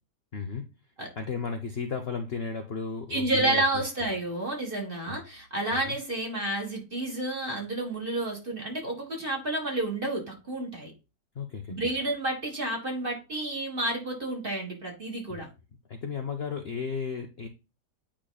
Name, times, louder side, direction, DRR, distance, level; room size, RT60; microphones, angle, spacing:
voice 1, 0.3-0.7 1.2-3.6 5.1-5.2 5.7-6.0 11.3-11.8 15.3-15.4 15.9-17.5, left 5 dB, 50° left, 4 dB, 0.8 m, -34 dB
voice 2, 3.1-10.9 11.7-15.5, right 2 dB, 30° right, 1 dB, 2.0 m, -30 dB
8.8 x 5.1 x 2.3 m, 0.27 s
omnidirectional pair, 1.8 m